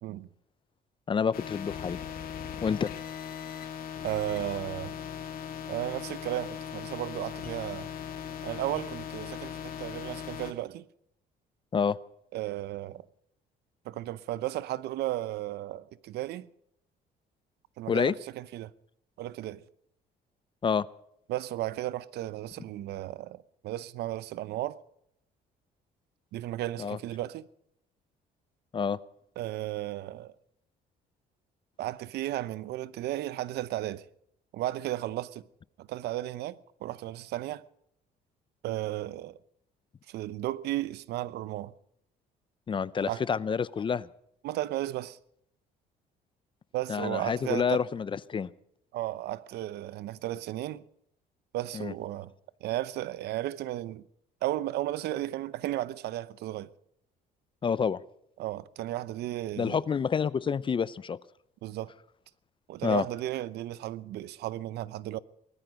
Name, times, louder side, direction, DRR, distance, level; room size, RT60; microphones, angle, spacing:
voice 1, 1.1-2.0 2.6-2.9 11.7-12.0 17.9-18.1 20.6-20.9 26.8-27.0 28.7-29.0 42.7-44.1 46.9-48.5 51.7-51.9 57.6-58.0 59.6-61.2 62.8-63.0, left 6 dB, 30° left, 0.6 m, -28 dB
sound 1, 1.3-10.5, left 9 dB, 60° left, 2.5 m, -39 dB
voice 2, 4.0-5.0 5.7-7.9 8.4-10.9 12.3-13.1 13.8-16.5 17.8-18.7 19.2-19.6 21.3-24.8 26.3-27.5 29.4-30.3 31.8-34.1 34.5-35.4 35.8-37.6 38.6-39.4 40.1-41.7 43.1-43.3 44.4-45.2 46.7-47.8 48.9-50.8 51.5-52.3 52.6-54.0 54.4-56.7 58.4-59.8 61.6-61.9 62.7-65.2, right 14 dB, 75° right, 0.8 m, -34 dB
20.0 x 13.5 x 5.1 m
cardioid pair, 110°, 17 cm